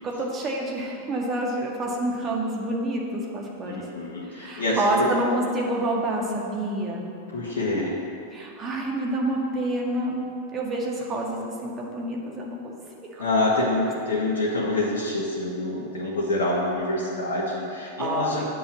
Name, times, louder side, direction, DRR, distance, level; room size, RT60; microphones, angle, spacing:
voice 1, 0.0-3.8 4.3-7.1 8.3-10.3 10.5-12.7 13.1-13.3 13.6-13.7 18.0-18.3, right 1 dB, 25° right, -1 dB, 1.9 m, -28 dB
voice 2, 3.6-5.1 7.3-8.0 13.2-18.5, left 2 dB, 60° left, -5 dB, 1.6 m, -26 dB
8.7 x 6.6 x 7.7 m, 2.6 s
figure-of-eight pair, 90°, 0 cm